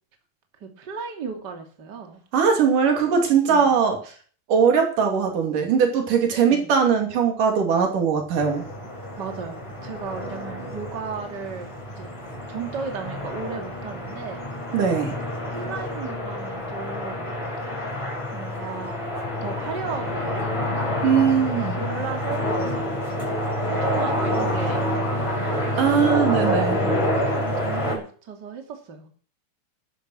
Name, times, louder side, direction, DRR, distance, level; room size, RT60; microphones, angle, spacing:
voice 1, 0.6-2.2 3.5-3.8 6.3-6.7 9.2-12.1 12.5-14.5 15.5-17.3 18.3-19.0 19.4-20.4 21.6-22.8 23.6-25.7 26.7-29.1, right 6 dB, 35° right, 4 dB, 2.8 m, -35 dB
voice 2, 2.3-4.0 4.5-8.6 14.7-15.1 21.0-21.8 25.8-26.8, right 6 dB, 75° right, 4 dB, 4.2 m, -20 dB
sound 1, 8.4-27.9, left 1 dB, 10° left, 5.6 m, -28 dB
12.5 x 12.0 x 6.3 m, 0.43 s
omnidirectional pair, 3.7 m